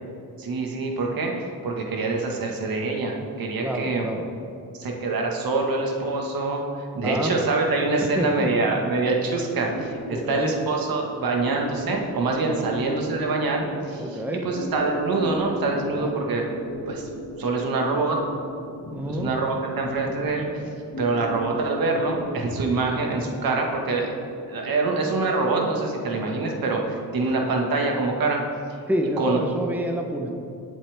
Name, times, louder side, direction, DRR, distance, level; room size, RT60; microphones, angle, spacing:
voice 1, 0.4-4.1 4.7-16.4 16.9-17.1 17.4-18.2 18.9-20.5 21.0-24.1 24.4-28.4 29.2-29.7, right 3 dB, 70° right, 1 dB, 1.7 m, -25 dB
voice 2, 3.6-4.3 7.0-7.3 8.0-8.5 10.1-10.5 12.5-12.7 14.0-14.5 15.9-16.1 18.9-19.3 28.9-30.3, right 1 dB, 5° right, 2 dB, 1.0 m, -28 dB
sound 1, 9.7-28.4, left 1 dB, 50° left, 1.9 m, -38 dB
19.5 x 7.3 x 3.6 m, 2.6 s
cardioid pair, 115°, 36 cm